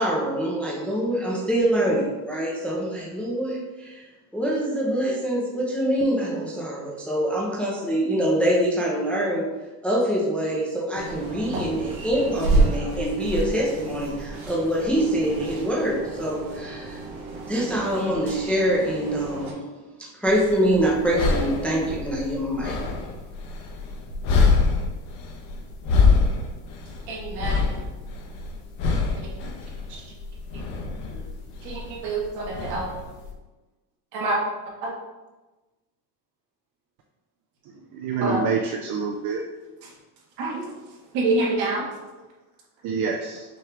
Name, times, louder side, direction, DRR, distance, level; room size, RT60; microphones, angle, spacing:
voice 1, 0.0-4.0 4.3-9.5 9.8-17.0 17.5-19.6 20.2-22.8, right 1 dB, 5° left, -5 dB, 0.5 m, -25 dB
sound 1, 10.9-19.5, right 2 dB, 85° right, 1.3 m, -29 dB
sound 2, 20.3-33.3, left 4 dB, 65° left, 0.9 m, -26 dB
voice 2, 27.1-27.8 29.9-30.0 31.1-31.2 31.6-32.9 34.1-34.4 34.8-34.9 38.2-38.4 40.4-40.6 41.1-41.8, right 2 dB, 60° right, -2 dB, 1.4 m, -26 dB
voice 3, 37.9-39.4 42.8-43.4, right 5 dB, 45° right, 1 dB, 0.4 m, -26 dB
5.9 x 2.4 x 3.3 m, 1.1 s
cardioid pair, 145°, 43 cm